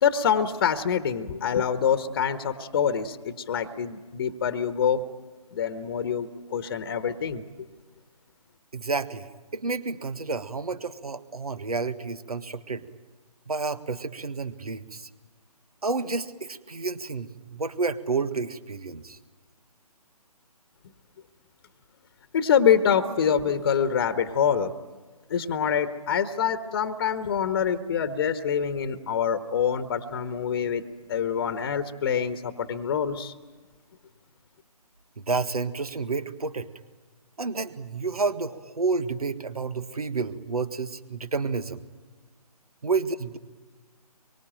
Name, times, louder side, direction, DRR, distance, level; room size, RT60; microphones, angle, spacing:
voice 1, 0.0-5.0 5.5-7.4 22.3-24.7 25.3-30.8 31.1-33.3, left 7 dB, 35° left, 10 dB, 1.4 m, -25 dB
voice 2, 8.7-12.8 13.5-15.1 15.8-19.2 35.2-36.7 37.4-41.8 42.8-43.4, right 4 dB, 70° right, 12 dB, 1.8 m, -30 dB
25.0 x 24.0 x 9.1 m, 1.3 s
figure-of-eight pair, 145°, 20 cm